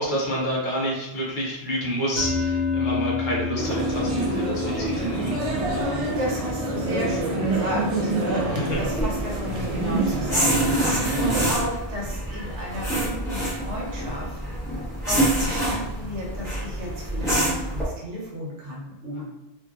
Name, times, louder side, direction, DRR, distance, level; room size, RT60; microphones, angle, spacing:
voice 1, 0.0-5.4 8.5-8.8 15.9-16.1 19.1-19.2, equal, 50° left, -3 dB, 0.9 m, -28 dB
sound 1, 2.2-12.6, left 4 dB, 40° right, 0.8 m, -32 dB
sound 2, 3.6-11.5, right 2 dB, 55° right, 0.4 m, -27 dB
voice 2, 6.2-14.4 14.7-19.2, equal, 85° right, -4 dB, 1.2 m, -33 dB
sound 3, 8.7-17.8, right 1 dB, 5° left, 1.0 m, -27 dB
2.8 x 2.7 x 2.3 m, 0.92 s
omnidirectional pair, 1.2 m